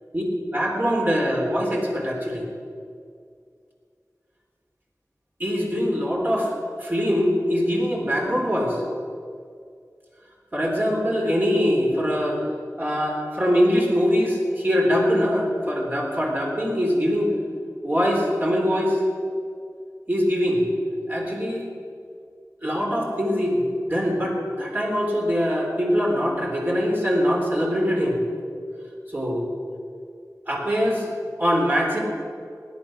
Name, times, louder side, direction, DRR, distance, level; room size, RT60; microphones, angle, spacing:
voice 1, 0.5-2.5 5.4-6.5 6.8-8.8 10.5-12.4 12.8-17.3 17.8-19.0 20.1-20.7 21.1-21.6 22.6-28.2 29.1-29.5 30.5-31.1 31.4-32.0, equal, 30° right, -2 dB, 3.5 m, -23 dB
17.0 x 10.5 x 6.1 m, 2.3 s
wide cardioid pair, 55°, 6 cm